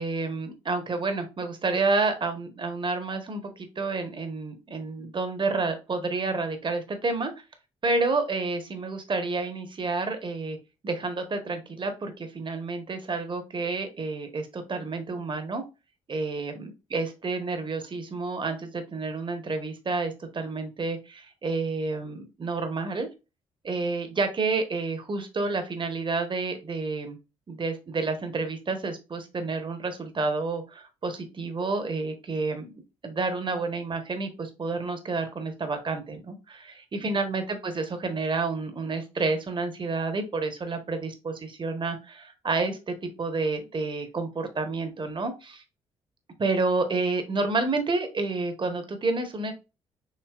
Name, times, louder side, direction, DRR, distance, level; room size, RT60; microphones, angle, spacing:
voice 1, 0.0-7.3 7.8-10.6 10.8-15.6 16.1-23.1 23.6-27.2 27.5-32.7 33.0-45.6 46.4-49.5, right 3 dB, 35° right, 7 dB, 1.1 m, -29 dB
6.6 x 3.0 x 2.4 m, 0.29 s
hypercardioid pair, 45°, 14 cm